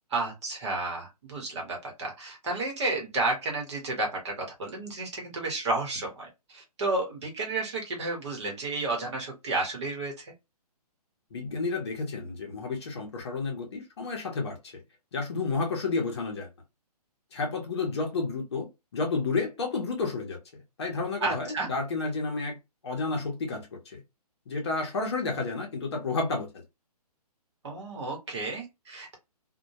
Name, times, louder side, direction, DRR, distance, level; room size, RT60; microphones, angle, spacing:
voice 1, 0.1-10.3 21.2-21.7 27.6-29.2, right 2 dB, 45° right, 1.0 m, -32 dB
voice 2, 11.3-14.8 15.1-16.5 17.3-18.7 18.9-20.4 20.8-22.5 22.8-24.0 24.5-26.5, left 3 dB, 40° left, 0.7 m, -31 dB
2.2 x 2.1 x 2.7 m
hypercardioid pair, 170°, 20 cm